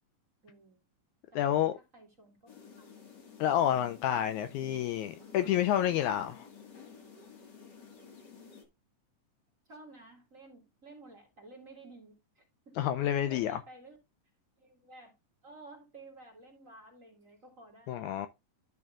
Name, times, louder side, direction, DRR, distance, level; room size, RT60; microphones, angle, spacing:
voice 1, 0.4-0.8 1.3-2.9 9.7-14.0 14.6-15.1 15.4-18.2, right 2 dB, 30° right, 1.9 m, -53 dB
voice 2, 1.4-1.7 3.4-6.5 12.8-13.6 17.9-18.3, left 11 dB, 80° left, 1.8 m, -29 dB
sound 1, 2.5-8.7, left 6 dB, 40° left, 1.9 m, -52 dB
12.0 x 6.2 x 2.4 m
omnidirectional pair, 3.8 m